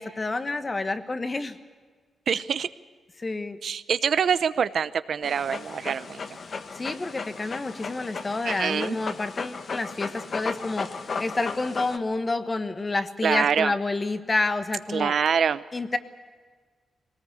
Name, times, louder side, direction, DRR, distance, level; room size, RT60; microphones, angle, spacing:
voice 1, 0.0-1.6 3.2-3.6 6.8-10.9 11.2-15.1 15.7-16.0, left 3 dB, 25° left, 10 dB, 1.3 m, -29 dB
voice 2, 2.3-2.7 3.6-6.2 8.4-9.0 13.2-13.7 14.9-15.6, right 7 dB, 60° right, 14 dB, 0.7 m, -25 dB
Dog, 5.2-12.0, left 4 dB, 45° left, 1.2 m, -35 dB
21.5 x 19.0 x 8.1 m, 1.5 s
wide cardioid pair, 140°, 0 cm